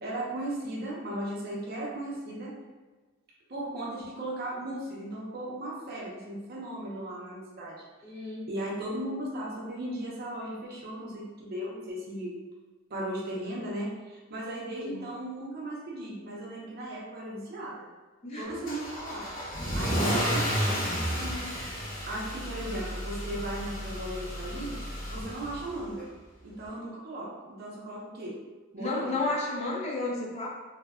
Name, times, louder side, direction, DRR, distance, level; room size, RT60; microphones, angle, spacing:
voice 1, 0.0-2.5 3.5-12.3 12.9-17.8 18.4-19.3 19.7-21.5 22.1-24.8 25.1-26.1 26.4-28.4 28.7-29.1, right 1 dB, 50° right, -4 dB, 0.5 m, -37 dB
voice 2, 8.0-8.5 14.8-15.1 18.2-18.7 19.6-19.8 20.1-20.7 28.8-30.5, left 2 dB, 30° left, -4 dB, 0.4 m, -33 dB
Car / Engine starting / Accelerating revving vroom, 18.7-25.8, equal, 45° left, 1.1 m, -32 dB
2.6 x 2.1 x 2.3 m, 1.3 s
head